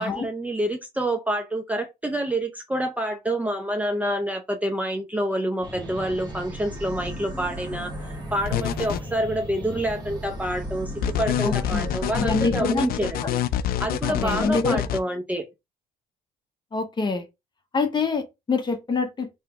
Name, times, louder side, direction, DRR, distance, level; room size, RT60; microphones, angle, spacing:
voice 1, 0.0-13.4 13.8-15.4, right 1 dB, 10° right, 0.6 m, -27 dB
sound 1, 5.6-12.6, equal, 10° left, 1.3 m, -41 dB
sound 2, 5.6-12.7, equal, 25° right, 1.5 m, -36 dB
sound 3, 8.5-9.0 11.0-15.0, left 12 dB, 60° left, 0.4 m, -26 dB
voice 2, 11.4-12.9 13.2-13.3 14.1-14.8 16.7-17.2 17.7-19.4, left 4 dB, 25° left, 1.0 m, -26 dB
3.3 x 3.1 x 3.4 m
cardioid pair, 110°, 17 cm